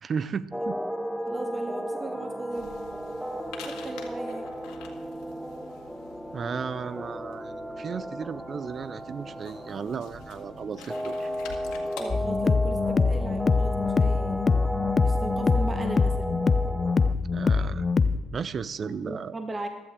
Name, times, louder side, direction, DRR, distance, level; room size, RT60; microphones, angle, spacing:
voice 1, 0.0-0.8 6.3-11.3 17.3-17.9 18.3-19.3, right 6 dB, 40° right, 17 dB, 0.6 m, -34 dB
sound 1, 0.5-17.1, equal, 5° right, 0.8 m, -34 dB
voice 2, 1.3-2.8 3.6-4.5 12.0-14.5 15.0-16.4 18.8-19.7, right 2 dB, 25° right, 6 dB, 1.2 m, -37 dB
sound 2, 2.5-12.0, left 6 dB, 75° left, 2.0 m, -48 dB
sound 3, 12.1-18.2, left 4 dB, 30° left, 0.5 m, -24 dB
15.0 x 12.0 x 3.7 m, 1.3 s
supercardioid pair, 70°, 0 cm